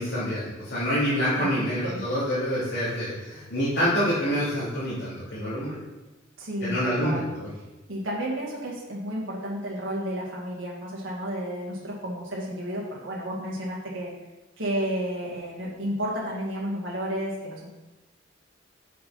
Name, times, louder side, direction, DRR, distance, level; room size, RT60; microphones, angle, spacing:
voice 1, 0.0-5.8 6.6-7.5, equal, 60° left, -12 dB, 2.8 m, -27 dB
voice 2, 1.4-2.0 6.4-7.3 7.9-14.1 14.6-17.8, equal, 70° right, -5 dB, 2.1 m, -32 dB
6.4 x 5.7 x 5.6 m, 1.1 s
head